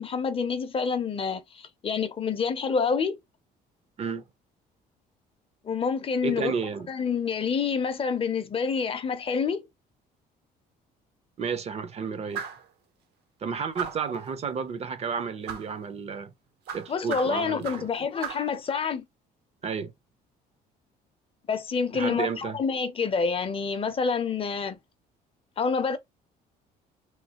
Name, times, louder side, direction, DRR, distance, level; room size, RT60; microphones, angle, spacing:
voice 1, 0.0-3.2 5.6-6.5 6.9-9.6 16.9-19.1 21.5-24.8 25.6-26.0, left 5 dB, 35° left, 0.5 m, -27 dB
voice 2, 6.2-6.9 11.4-12.4 13.4-16.3 16.7-17.9 19.6-19.9 21.9-22.6, right 6 dB, 40° right, 0.5 m, -32 dB
sound 1, 12.3-12.7 13.8-14.2 15.5-15.7 16.7-17.9 18.2-18.5, right 7 dB, 75° right, 0.9 m, -36 dB
3.1 x 2.6 x 2.8 m
cardioid pair, 110°, 17 cm